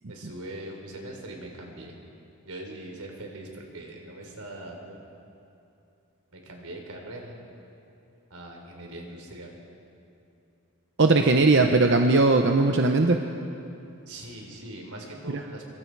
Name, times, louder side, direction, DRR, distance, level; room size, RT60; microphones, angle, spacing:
voice 1, 0.1-2.0 2.4-5.0 6.3-7.4 8.3-9.5 11.1-11.5 14.1-15.6, right 1 dB, 85° right, 1 dB, 4.1 m, -41 dB
voice 2, 11.0-13.2 15.3-15.4, right 3 dB, 50° right, 4 dB, 0.8 m, -19 dB
24.5 x 24.0 x 4.8 m, 2.7 s
head